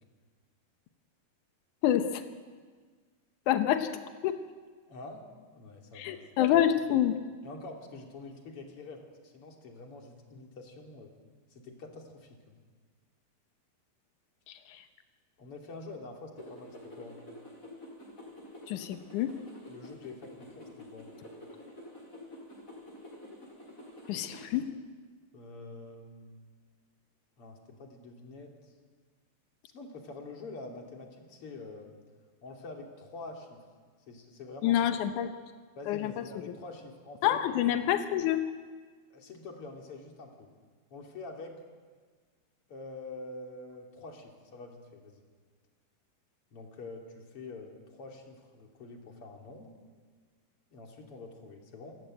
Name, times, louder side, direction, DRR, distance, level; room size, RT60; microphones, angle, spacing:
voice 1, 1.8-2.2 3.5-3.9 4.2-4.4 6.0-7.2 18.7-19.3 24.1-24.7 34.6-35.3 35.9-36.1 37.2-38.4, left 11 dB, 90° left, 8 dB, 1.7 m, -27 dB
voice 2, 4.9-5.2 5.5-6.2 6.5-6.6 7.4-11.1 11.5-12.5 15.4-17.2 19.7-21.1 25.3-26.4 27.4-28.7 29.7-31.9 32.4-33.6 34.1-34.8 35.8-37.4 39.1-40.5 40.9-41.5 42.7-45.2 46.5-49.7 50.7-52.0, left 3 dB, 35° left, 2 dB, 3.1 m, -46 dB
sound 1, 16.4-24.7, left 1 dB, 20° left, 6.0 m, -49 dB
27.0 x 14.0 x 9.0 m, 1.5 s
omnidirectional pair, 4.9 m